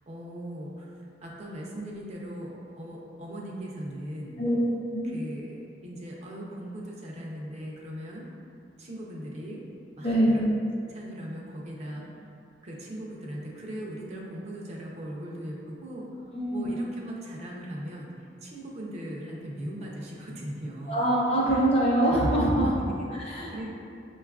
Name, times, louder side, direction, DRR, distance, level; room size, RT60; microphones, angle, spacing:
voice 1, 0.1-4.4 5.0-8.3 8.8-9.6 9.9-10.4 10.9-12.0 12.6-21.1 21.5-21.6 22.6-23.8, right 1 dB, 40° right, -3 dB, 0.4 m, -39 dB
voice 2, 10.0-10.4 16.3-16.7 20.9-22.7 23.1-23.5, right 1 dB, 35° left, -5 dB, 0.7 m, -24 dB
5.1 x 2.3 x 2.3 m, 2.6 s
head